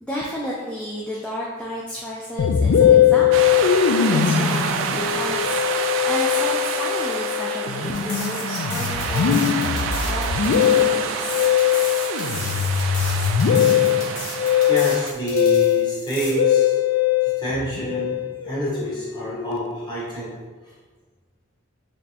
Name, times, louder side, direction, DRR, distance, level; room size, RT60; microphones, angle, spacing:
voice 1, 0.0-3.5 4.1-9.4 10.0-11.4, left 1 dB, 5° left, -5 dB, 0.3 m, -32 dB
Musical instrument, 2.4-20.0, left 9 dB, 85° left, 0.3 m, -21 dB
sound 1, 3.3-15.1, right 6 dB, 80° right, 0.3 m, -28 dB
sound 2, 7.9-16.3, left 3 dB, 70° left, 0.9 m, -35 dB
voice 2, 14.7-16.8 17.2-18.2 18.4-20.3 20.6-20.7, right 2 dB, 20° left, -7 dB, 1.1 m, -28 dB
4.2 x 3.2 x 2.8 m, 1.4 s
head